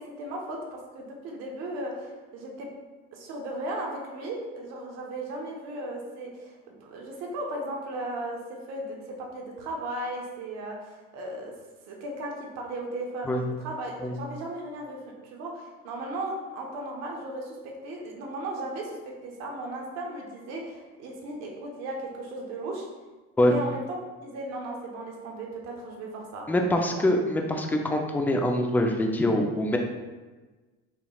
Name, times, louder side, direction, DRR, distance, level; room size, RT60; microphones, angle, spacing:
voice 1, 0.0-2.7 3.1-8.4 8.7-11.5 11.9-15.0 15.2-18.9 19.2-22.9 23.4-24.0 24.2-26.5 26.9-27.0, right 1 dB, 65° right, 0 dB, 1.1 m, -36 dB
voice 2, 26.5-29.8, left 1 dB, 5° left, 3 dB, 0.4 m, -24 dB
5.8 x 3.1 x 2.3 m, 1.3 s
supercardioid pair, 110°, 29 cm